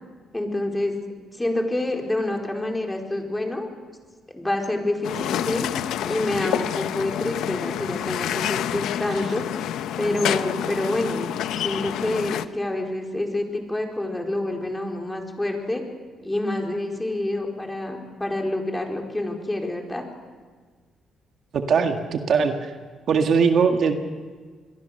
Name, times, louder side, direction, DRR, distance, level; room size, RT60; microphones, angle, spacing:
voice 1, 0.3-1.0 1.3-3.7 4.3-5.7 6.0-9.5 10.0-15.8 16.2-20.0, left 1 dB, 10° left, 2 dB, 4.5 m, -27 dB
sound 1, 5.0-12.5, left 11 dB, 85° left, 0.8 m, -28 dB
voice 2, 21.5-22.7 23.1-23.9, right 5 dB, 60° right, 5 dB, 1.9 m, -20 dB
26.5 x 22.0 x 6.7 m, 1.5 s
cardioid pair, 90°, 0 cm